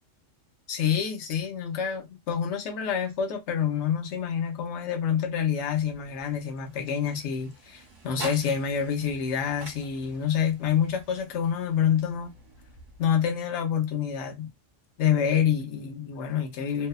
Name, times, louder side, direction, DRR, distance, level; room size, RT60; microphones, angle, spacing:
voice 1, 0.7-12.3 13.0-14.5 15.0-16.9, left 8 dB, 65° left, 0.9 m, -27 dB
sound 1, 5.3-13.5, right 2 dB, 40° right, 1.1 m, -47 dB
2.7 x 2.1 x 2.2 m
omnidirectional pair, 1.3 m